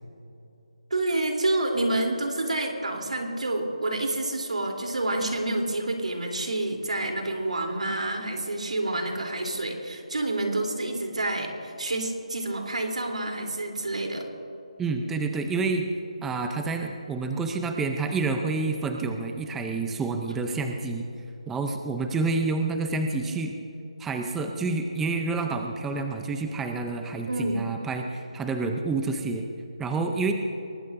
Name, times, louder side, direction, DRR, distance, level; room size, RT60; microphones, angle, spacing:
voice 1, 0.9-14.3 27.3-27.6, right 2 dB, 90° right, 2 dB, 3.3 m, -28 dB
voice 2, 14.8-15.9 16.2-21.0 21.5-23.6 24.0-29.5 29.8-30.3, right 3 dB, 5° right, 4 dB, 0.6 m, -28 dB
23.5 x 20.0 x 2.6 m, 2.8 s
figure-of-eight pair, 165°, 4 cm